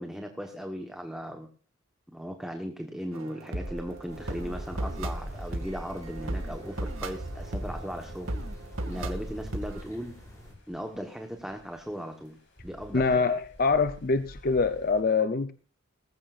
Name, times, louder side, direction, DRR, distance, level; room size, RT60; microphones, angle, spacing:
voice 1, 0.0-1.5 2.1-8.4 8.8-10.2 10.7-12.4 12.6-13.3, equal, 5° right, 4 dB, 1.1 m, -37 dB
sound 1, 3.1-9.8, right 1 dB, 85° right, 2.1 m, -36 dB
sound 2, 3.5-15.0, right 1 dB, 65° left, 6.1 m, -45 dB
sound 3, 4.1-10.5, equal, 15° left, 5.9 m, -47 dB
voice 2, 12.9-15.5, left 4 dB, 45° left, 10 dB, 0.6 m, -25 dB
19.0 x 15.0 x 2.5 m, 0.36 s
head